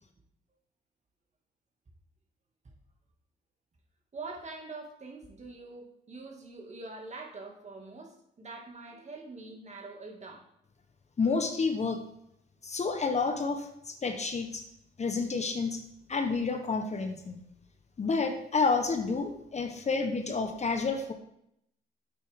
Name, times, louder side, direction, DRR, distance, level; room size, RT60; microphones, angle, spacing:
voice 1, 4.1-10.5, right 3 dB, 35° right, 1 dB, 2.1 m, -44 dB
voice 2, 11.2-12.0 12.6-14.6 15.0-15.8 16.1-17.4 18.0-21.1, left 4 dB, 35° left, 6 dB, 1.1 m, -29 dB
9.4 x 8.2 x 3.6 m, 0.76 s
cardioid pair, 90°, 20 cm